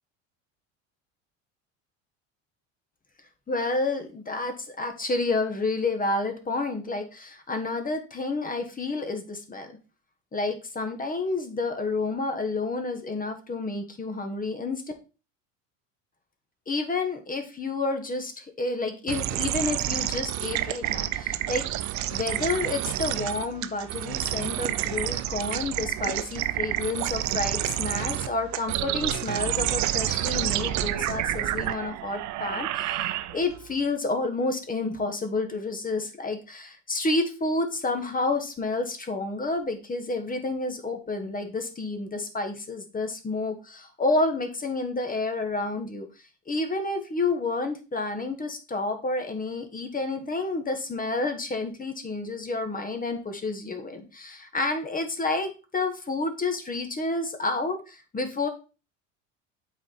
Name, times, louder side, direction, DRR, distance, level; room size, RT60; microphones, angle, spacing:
voice 1, 3.5-9.8 10.3-14.8 16.7-21.8 22.1-46.1 46.5-58.5, left 3 dB, 20° left, 7 dB, 1.4 m, -30 dB
sound 1, 19.1-33.6, right 14 dB, 50° right, 0.6 m, -29 dB
7.7 x 4.4 x 4.2 m, 0.33 s
hypercardioid pair, 75°, 38 cm